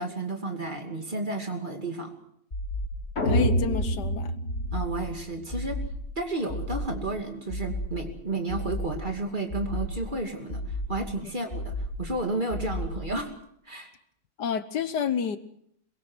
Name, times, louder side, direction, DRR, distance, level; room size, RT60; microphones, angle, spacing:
voice 1, 0.0-2.1 4.7-5.8 6.2-10.6 10.9-13.3 13.7-13.9, right 2 dB, 30° right, 4 dB, 2.7 m, -32 dB
sound 1, 2.5-3.1 3.5-4.1 4.5-5.1 5.5-6.1 6.5-7.1 7.5-8.1 8.5-9.1 9.5-10.1 10.5-11.1 11.5-12.1 12.5-13.1, left 1 dB, 35° left, 5.6 m, -34 dB
voice 2, 3.2-4.3 14.4-15.4, left 7 dB, 80° left, 12 dB, 1.7 m, -29 dB
sound 2, 3.2-5.4, equal, 60° left, 4.0 m, -27 dB
22.5 x 22.0 x 6.2 m, 0.68 s
omnidirectional pair, 1.8 m